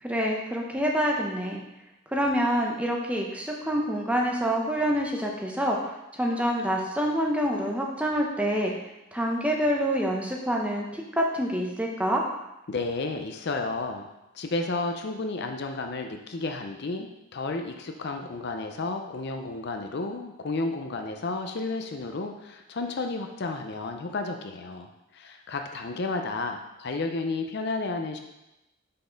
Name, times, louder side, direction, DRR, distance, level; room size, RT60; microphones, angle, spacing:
voice 1, 0.0-1.6 2.1-5.8 6.1-8.7 9.1-12.2, equal, 5° right, -1 dB, 0.7 m, -26 dB
voice 2, 12.7-14.1 14.3-28.2, left 3 dB, 50° left, 4 dB, 0.5 m, -32 dB
5.7 x 4.2 x 5.1 m, 0.95 s
head